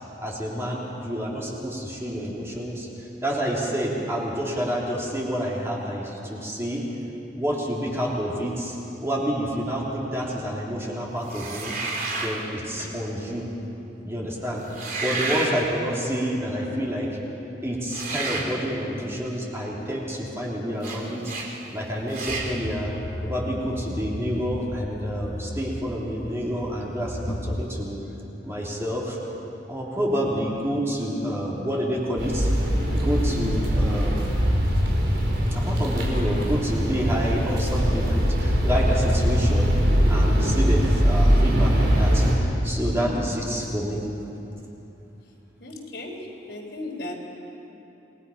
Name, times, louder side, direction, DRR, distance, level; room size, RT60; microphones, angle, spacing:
voice 1, 0.2-2.9 3.2-6.8 7.3-8.8 9.0-11.8 12.2-13.5 14.0-14.6 15.0-17.1 17.6-21.2 21.7-22.9 23.2-28.0 28.4-29.2 29.7-32.5 32.9-34.3 35.5-39.7 40.1-44.0, equal, 15° right, -4 dB, 3.5 m, -28 dB
sound 1, 11.3-12.4 14.6-15.5 17.9-18.5 20.8-21.0 21.2-21.5 22.1-22.5, right 3 dB, 50° right, 3.3 m, -30 dB
sound 2, 22.3-27.7, left 1 dB, 40° left, 1.2 m, -34 dB
sound 3, 32.2-42.3, equal, 85° right, 4.9 m, -21 dB
voice 2, 45.6-47.2, left 2 dB, 70° left, 0 dB, 3.8 m, -36 dB
28.0 x 20.5 x 5.7 m, 3.0 s
head